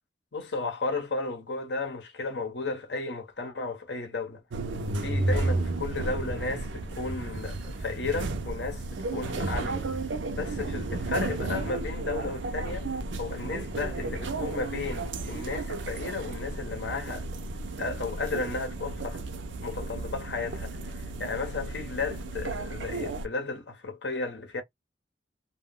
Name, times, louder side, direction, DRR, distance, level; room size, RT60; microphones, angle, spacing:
voice 1, 0.3-4.4 5.0-9.9 10.3-12.9 13.2-17.3 17.8-19.2 19.6-24.6, left 3 dB, 70° left, 0.8 m, -34 dB
sound 1, 4.5-23.3, right 3 dB, 85° right, 0.5 m, -33 dB
sound 2, 4.6-16.1, equal, 5° left, 0.6 m, -46 dB
2.2 x 2.1 x 3.5 m
head